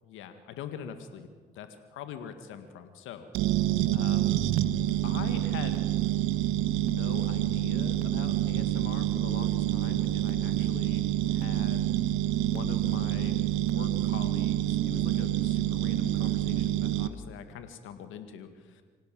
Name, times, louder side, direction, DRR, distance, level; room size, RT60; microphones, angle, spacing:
voice 1, 0.1-3.3 3.9-4.4 5.0-5.9 6.8-11.0 11.3-11.9 12.5-13.4 13.7-18.8, left 8 dB, 80° left, 8 dB, 1.9 m, -43 dB
sound 1, 3.3-17.1, right 13 dB, 90° right, 1.0 m, -27 dB
26.0 x 17.0 x 7.5 m, 1.5 s
supercardioid pair, 55°, 20 cm